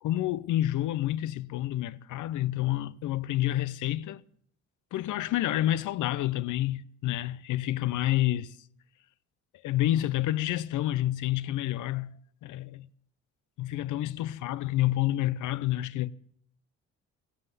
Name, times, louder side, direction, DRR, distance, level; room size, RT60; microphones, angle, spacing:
voice 1, 0.0-4.2 4.9-8.6 9.6-12.9 13.6-16.1, left 14 dB, 80° left, 0.7 m, -29 dB
14.5 x 9.7 x 9.1 m
cardioid pair, 90°, 30 cm